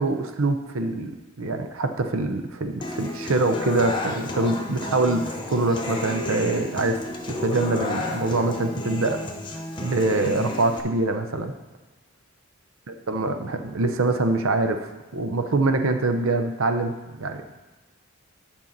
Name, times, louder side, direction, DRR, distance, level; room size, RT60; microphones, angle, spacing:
voice 1, 0.0-7.0 7.3-9.2 9.8-11.5 12.9-17.5, right 2 dB, 70° right, 7 dB, 0.7 m, -24 dB
Human voice / Acoustic guitar, 2.8-10.8, left 1 dB, 20° left, 0.8 m, -31 dB
10.0 x 5.5 x 4.0 m, 1.2 s
head